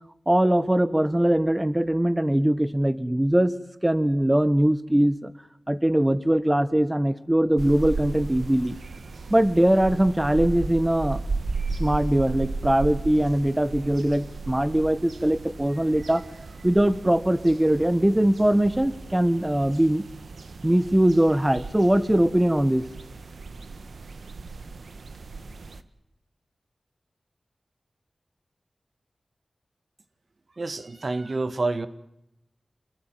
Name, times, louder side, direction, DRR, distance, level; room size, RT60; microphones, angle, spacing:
voice 1, 0.3-3.5 3.8-5.3 5.7-8.7 9.3-11.2 11.8-16.2 16.6-20.0 20.6-22.9, right 1 dB, 15° right, 1.5 m, -21 dB
sound 1, 7.6-25.8, right 4 dB, 80° right, 1.6 m, -35 dB
voice 2, 30.6-31.9, right 3 dB, 60° right, 1.7 m, -28 dB
27.5 x 20.5 x 9.3 m
cardioid pair, 45°, 0 cm